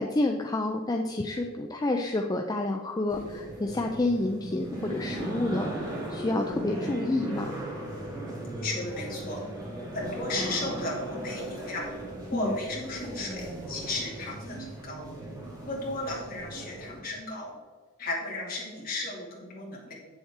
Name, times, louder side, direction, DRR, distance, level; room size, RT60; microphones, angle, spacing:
voice 1, 0.0-7.5 12.3-12.5, left 2 dB, 15° left, 3 dB, 0.4 m, -29 dB
sound 1, 3.1-17.0, right 1 dB, 15° right, 1.6 m, -37 dB
voice 2, 8.5-9.4 9.9-11.9 12.3-15.0 15.7-17.5 18.0-19.9, left 2 dB, 40° left, -4 dB, 2.4 m, -34 dB
8.4 x 7.1 x 3.7 m, 1.5 s
head